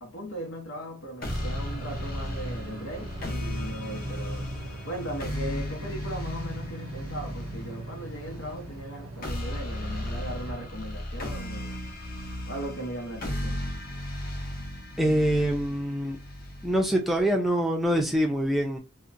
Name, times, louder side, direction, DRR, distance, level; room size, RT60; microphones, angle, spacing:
voice 1, 0.0-4.5 4.8-11.8 12.5-13.6, equal, 80° left, 0.8 m, -38 dB
sound 1, 1.2-17.2, left 1 dB, 45° left, 0.7 m, -35 dB
sound 2, 1.2-10.7, right 2 dB, 85° right, 0.5 m, -40 dB
voice 2, 15.0-16.2 16.6-18.8, equal, ahead, 0.5 m, -25 dB
2.8 x 2.1 x 2.5 m
head